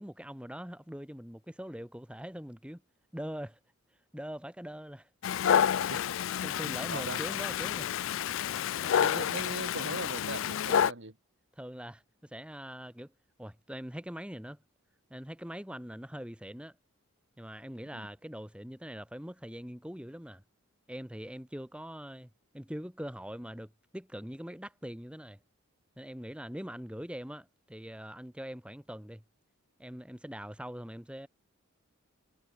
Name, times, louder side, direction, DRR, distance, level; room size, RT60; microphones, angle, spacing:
voice 1, 0.0-2.8 3.1-3.6 4.1-5.1 6.4-7.9 8.5-9.0 11.6-13.1 13.4-14.6 15.1-16.8 17.4-20.4 20.9-25.4 26.0-29.2 29.8-31.3, equal, 5° right, 1.3 m, -42 dB
Dog, 5.2-10.9, left 9 dB, 60° left, 0.3 m, -29 dB
voice 2, 5.7-6.2 6.9-7.2 9.0-11.2 17.9-18.1, right 2 dB, 55° right, 1.9 m, -40 dB
head